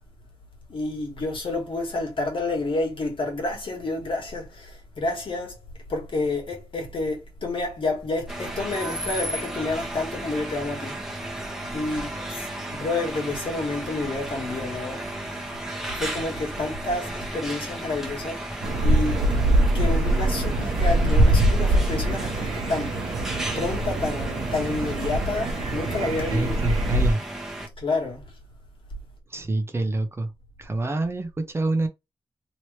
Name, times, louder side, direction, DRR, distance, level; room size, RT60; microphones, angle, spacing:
voice 1, 0.7-5.6 5.9-11.0 11.7-15.1 15.9-19.2 19.7-23.0 23.5-26.6 27.8-28.2, left 2 dB, 60° left, 1.5 m, -29 dB
sound 1, 8.3-27.7, right 1 dB, 5° right, 1.0 m, -34 dB
sound 2, 18.6-27.1, right 1 dB, 80° right, 0.8 m, -23 dB
voice 2, 26.3-27.2 29.3-30.3 30.6-31.9, right 2 dB, 25° right, 0.7 m, -26 dB
3.0 x 3.0 x 3.1 m
wide cardioid pair, 150°, 10 cm